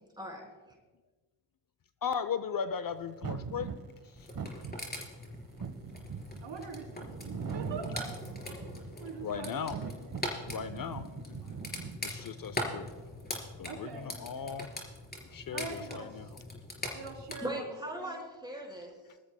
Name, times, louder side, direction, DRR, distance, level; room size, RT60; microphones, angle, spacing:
voice 1, 0.2-0.7 17.4-18.9, right 1 dB, 10° right, -1 dB, 4.7 m, -39 dB
voice 2, 2.0-3.7 4.0-4.3 9.2-10.0 10.5-12.9 13.6-14.7 15.2-16.3, left 6 dB, 45° left, 13 dB, 0.7 m, -38 dB
sound 1, 3.2-9.1 9.5-12.0, right 5 dB, 45° right, 1.2 m, -41 dB
sound 2, 4.2-17.4, left 1 dB, 20° left, 4.2 m, -42 dB
voice 3, 6.4-8.1 8.5-8.7 9.0-10.3 13.6-14.6 15.5-16.3 16.9-17.7 18.0-18.2, right 4 dB, 65° right, 1 dB, 3.0 m, -44 dB
21.0 x 13.5 x 2.2 m, 1.3 s
supercardioid pair, 50°, 48 cm